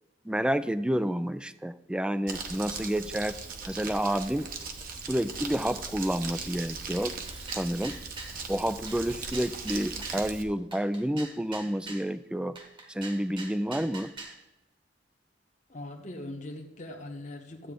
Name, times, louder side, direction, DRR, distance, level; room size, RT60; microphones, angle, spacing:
voice 1, 0.2-3.4 3.7-4.5 5.1-7.2 7.4-8.0 8.5-12.6 12.9-14.1, equal, 5° right, 14 dB, 0.3 m, -29 dB
Crumpling crinkling, 2.3-10.4, right 4 dB, 50° right, 1.1 m, -39 dB
sound 1, 7.2-8.4 8.9-10.2 10.7-12.1 12.5-14.4, right 3 dB, 30° right, 1.2 m, -43 dB
voice 2, 15.7-17.7, left 1 dB, 40° left, 2 dB, 1.1 m, -41 dB
12.5 x 8.2 x 3.8 m, 1.0 s
head